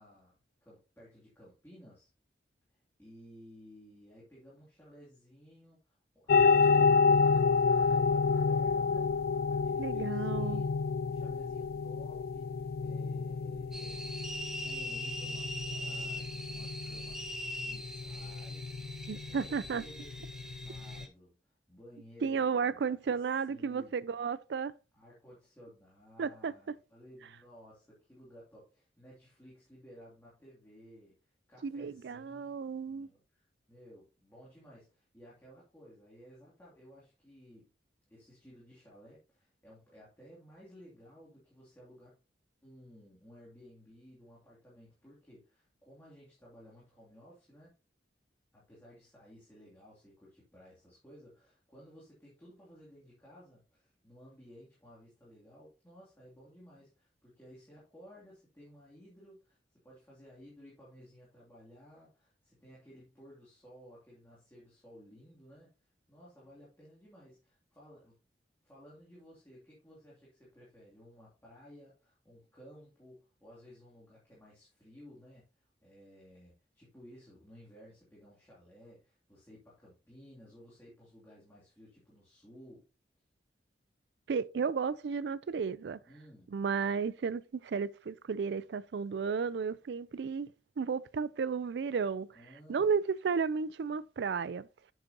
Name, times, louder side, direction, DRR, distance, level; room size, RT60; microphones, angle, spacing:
voice 1, 0.0-2.1 3.0-12.5 12.8-14.1 14.6-17.2 17.6-24.2 24.9-31.2 31.5-32.5 32.9-37.7 38.1-42.2 42.6-47.7 48.5-59.6 59.8-65.7 66.1-68.2 68.6-82.9 86.0-86.5 92.3-92.9, equal, 15° left, 2.6 m, -56 dB
sound 1, 6.3-21.0, left 5 dB, 55° left, 0.3 m, -29 dB
voice 2, 9.8-10.6 19.1-19.8 22.2-24.7 26.2-26.5 31.6-33.1 84.3-86.0 86.5-92.3 92.7-94.7, right 5 dB, 65° right, 0.4 m, -33 dB
sound 2, 13.7-21.1, equal, 5° right, 1.0 m, -42 dB
7.8 x 7.3 x 2.8 m
head